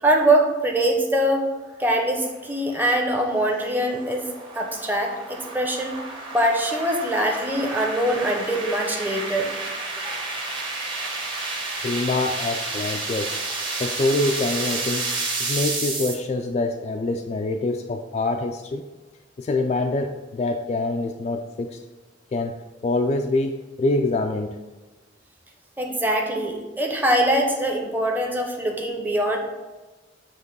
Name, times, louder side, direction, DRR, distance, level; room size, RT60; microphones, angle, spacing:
voice 1, 0.0-1.5 1.8-4.3 4.5-6.0 6.3-9.5 10.0-10.2 25.8-29.4, right 1 dB, 10° right, 1 dB, 0.8 m, -23 dB
sound 1, 2.2-16.1, right 3 dB, 25° right, 1.2 m, -31 dB
voice 2, 11.8-13.4 13.8-15.1 15.4-18.8 19.4-21.8 22.3-22.6 22.8-24.6, left 2 dB, 35° left, 3 dB, 0.3 m, -25 dB
8.0 x 3.0 x 5.4 m, 1.2 s
head